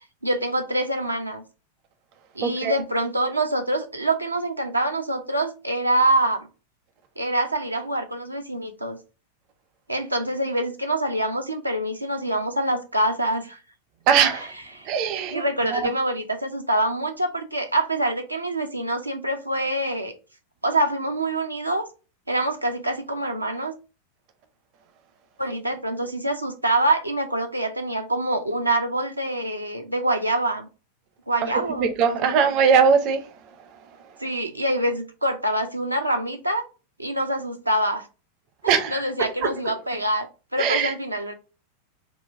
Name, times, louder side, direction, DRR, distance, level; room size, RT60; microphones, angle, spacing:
voice 1, 0.2-1.4 2.3-6.5 7.2-9.0 9.9-13.6 14.3-14.5 14.7-14.9 15.3-20.1 20.6-21.9 22.3-23.7 25.4-30.7 31.3-32.4 34.2-36.7 37.0-38.1 38.6-41.3, right 1 dB, 85° right, 0.6 m, -25 dB
voice 2, 2.4-2.7 14.1-14.5 14.9-15.4 15.7-15.8 31.4-31.5 31.8-33.2 38.7-39.0 39.4-39.5 40.6-40.9, right 6 dB, 40° right, 0.6 m, -20 dB
4.0 x 2.2 x 3.3 m
figure-of-eight pair, 90°, 0 cm